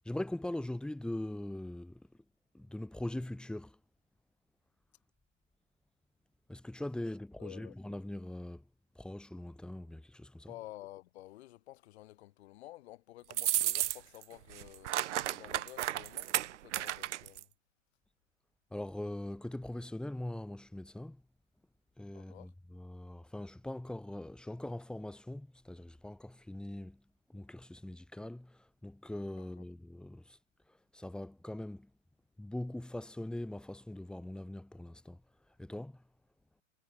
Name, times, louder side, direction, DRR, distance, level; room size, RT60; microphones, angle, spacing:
voice 1, 0.1-2.1 2.5-3.8 6.5-8.7 9.0-10.5 18.7-21.2 22.0-27.0 27.3-30.4 30.7-31.9 32.4-35.2 35.6-36.0, left 1 dB, ahead, 3.5 m, -42 dB
voice 2, 7.4-7.7 10.5-17.5 22.1-22.5 29.4-29.5, left 16 dB, 50° left, 6.6 m, -51 dB
sound 1, 13.3-14.2 14.5-17.4, right 13 dB, 60° right, 1.0 m, -33 dB
hypercardioid pair, 135°, 40 cm